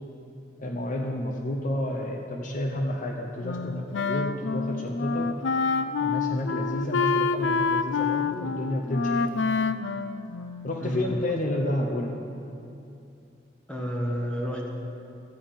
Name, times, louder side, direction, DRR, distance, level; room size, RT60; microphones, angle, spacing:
voice 1, 0.6-5.3 6.0-9.3 10.6-12.2, left 1 dB, 45° left, 1 dB, 0.9 m, -30 dB
Wind instrument woodwind instrument, 3.4-10.9, left 4 dB, 85° left, 0.4 m, -27 dB
voice 2, 10.8-11.2 13.7-14.7, equal, 5° left, -2 dB, 1.6 m, -30 dB
13.5 x 5.4 x 8.8 m, 2.6 s
head